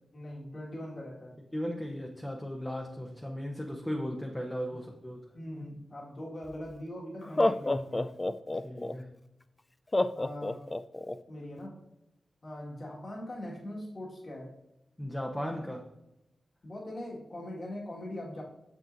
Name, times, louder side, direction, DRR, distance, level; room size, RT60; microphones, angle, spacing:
voice 1, 0.1-1.3 5.3-8.1 10.1-10.7 11.3-11.8 12.4-14.5 16.6-18.4, left 1 dB, 50° left, -4 dB, 1.8 m, -41 dB
voice 2, 1.5-5.3 8.6-9.1 15.0-15.9, equal, 10° left, 0 dB, 0.8 m, -36 dB
Laughter, 6.5-6.6 7.2-8.9 9.9-11.2, left 2 dB, 30° left, 0.3 m, -28 dB
6.7 x 6.3 x 2.6 m, 0.92 s
cardioid pair, 55°, 0 cm